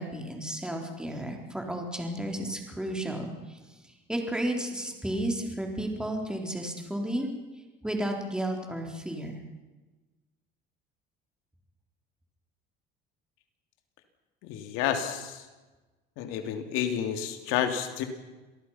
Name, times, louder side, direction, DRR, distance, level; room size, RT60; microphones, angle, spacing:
voice 1, 0.0-3.6 3.8-7.3 7.8-9.4, right 1 dB, 5° right, 2 dB, 4.2 m, -33 dB
voice 2, 14.4-15.4 16.2-18.0, left 9 dB, 85° left, 6 dB, 3.1 m, -30 dB
27.0 x 18.5 x 5.9 m, 1.2 s
cardioid pair, 115°, 20 cm